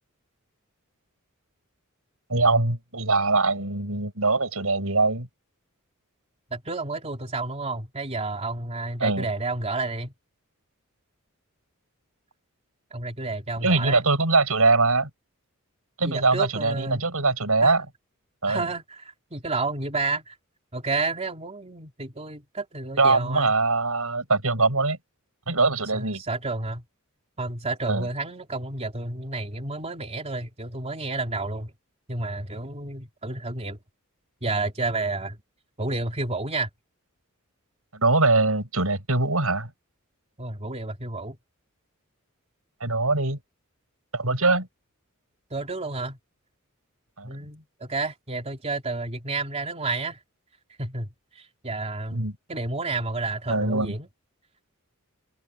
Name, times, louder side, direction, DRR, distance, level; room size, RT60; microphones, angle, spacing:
voice 1, 2.3-5.3 9.0-9.3 13.6-15.1 16.0-17.9 18.4-18.7 23.0-25.0 25.5-26.2 27.9-28.1 37.9-39.7 42.8-43.4 44.1-44.7 47.2-47.3 52.1-52.3 53.5-54.0, right 3 dB, 75° right, 7.3 m, -22 dB
voice 2, 6.5-10.1 12.9-14.0 16.0-17.0 17.6-17.8 18.5-20.4 20.7-23.5 25.9-26.8 27.4-31.7 32.1-33.8 34.4-35.4 35.8-36.7 40.4-41.4 45.5-46.2 47.2-50.2 50.8-51.1 51.4-54.1, right 3 dB, 30° right, 3.6 m, -30 dB
open air
head